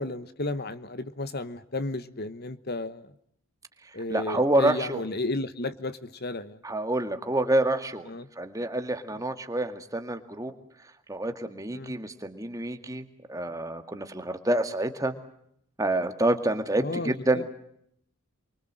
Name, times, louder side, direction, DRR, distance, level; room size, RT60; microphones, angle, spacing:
voice 1, 0.0-3.0 3.9-6.6 8.1-8.3 11.7-11.9 16.8-17.1, left 2 dB, 45° left, 12 dB, 1.2 m, -33 dB
voice 2, 4.1-5.0 6.6-8.1 8.4-10.5 11.1-15.1 15.8-17.5, right 1 dB, 15° right, 7 dB, 2.1 m, -27 dB
29.5 x 24.0 x 7.7 m, 0.72 s
head